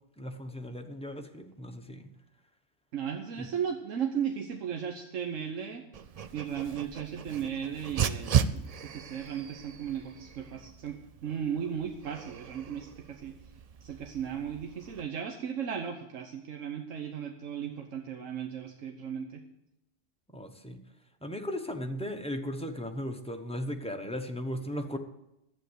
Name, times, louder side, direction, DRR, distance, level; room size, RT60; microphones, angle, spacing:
voice 1, 0.2-2.1 3.4-3.5 20.3-20.8 21.2-25.0, equal, 5° left, 4 dB, 0.9 m, -36 dB
voice 2, 2.9-5.8 6.3-13.3 13.8-19.4, right 8 dB, 85° right, 4 dB, 1.3 m, -36 dB
Dog, 5.9-15.0, right 8 dB, 65° right, 0.3 m, -35 dB
11.5 x 8.5 x 8.1 m, 0.87 s
omnidirectional pair, 1.3 m